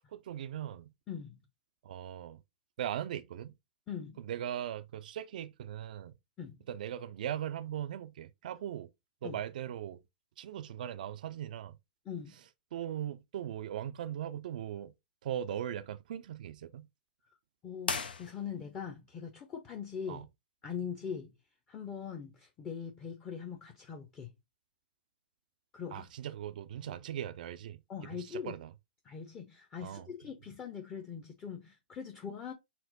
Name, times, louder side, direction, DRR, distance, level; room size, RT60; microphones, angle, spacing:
voice 1, 0.1-0.9 1.8-2.4 2.8-3.5 4.2-6.1 6.7-8.9 9.2-10.0 10.4-11.8 12.7-14.9 15.2-16.9 20.1-20.3 25.9-27.8 28.2-28.7 29.8-30.1, right 10 dB, 60° right, 0.4 m, -39 dB
voice 2, 1.1-1.4 3.9-4.2 6.4-6.7 9.2-9.4 12.1-12.4 17.6-20.2 20.6-21.4 21.7-24.3 25.7-26.1 27.9-28.5 29.0-32.5, left 7 dB, 25° left, 0.8 m, -42 dB
sound 1, 17.8-18.9, left 5 dB, 80° left, 0.7 m, -37 dB
4.4 x 2.1 x 4.1 m
figure-of-eight pair, 110°, 5 cm